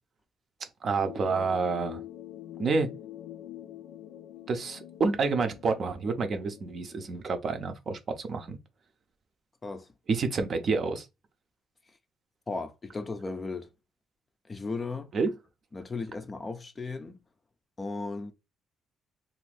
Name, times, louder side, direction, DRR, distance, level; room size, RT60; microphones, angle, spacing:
voice 1, 0.8-2.0 2.6-2.9 4.5-8.6 10.1-11.1 15.1-15.3, right 4 dB, 45° right, 0.5 m, -28 dB
sound 1, 1.0-7.3, left 12 dB, 85° left, 0.4 m, -45 dB
voice 2, 12.5-13.7 14.5-15.1 15.7-17.2 17.8-18.3, left 3 dB, 25° left, 0.4 m, -36 dB
2.6 x 2.5 x 3.3 m
cardioid pair, 130°, 0 cm